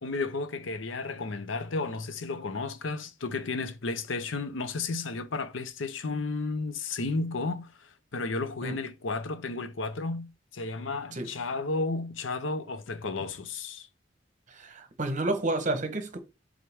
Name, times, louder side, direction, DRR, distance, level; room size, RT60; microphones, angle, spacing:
voice 1, 0.0-10.3 10.5-13.9, left 3 dB, 90° left, 0.7 m, -33 dB
voice 2, 14.5-16.2, right 2 dB, 40° right, 1.1 m, -30 dB
7.8 x 3.7 x 3.5 m
head